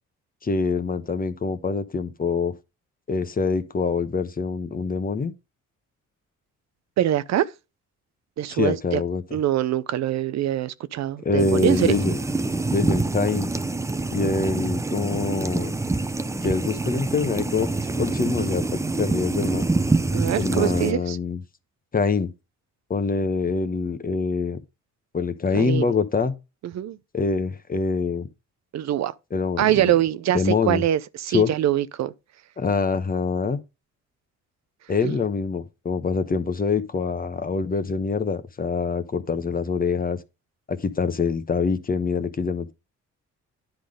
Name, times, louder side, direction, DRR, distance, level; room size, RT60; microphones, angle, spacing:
voice 1, 0.4-2.5 3.1-5.3 8.5-9.2 11.2-12.2 12.7-13.5 14.1-15.7 16.4-17.7 18.0-19.7 20.4-21.4 21.9-22.3 22.9-24.6 25.1-26.3 27.1-28.3 29.3-29.8 30.3-30.8 31.3-31.5 32.6-33.6 34.9-40.2 40.7-42.7, left 4 dB, 30° left, 1.0 m, -25 dB
voice 2, 7.0-7.5 8.4-9.0 9.3-11.9 20.1-21.2 25.5-25.9 26.6-27.0 28.7-29.1 29.6-32.1 35.0-35.1, right 12 dB, 60° right, 0.6 m, -24 dB
sound 1, 11.4-20.9, right 3 dB, 10° right, 0.5 m, -26 dB
10.5 x 3.9 x 5.0 m
cardioid pair, 90°, 30 cm